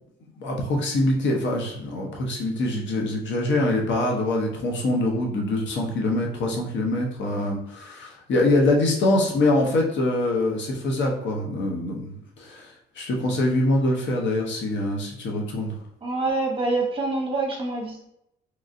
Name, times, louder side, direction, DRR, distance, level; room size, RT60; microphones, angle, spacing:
voice 1, 0.4-12.7 13.0-15.8, left 1 dB, 65° left, 0 dB, 0.8 m, -24 dB
voice 2, 16.0-18.1, right 3 dB, 25° right, 0 dB, 0.9 m, -26 dB
3.0 x 2.4 x 2.6 m, 0.80 s
cardioid pair, 90°, 20 cm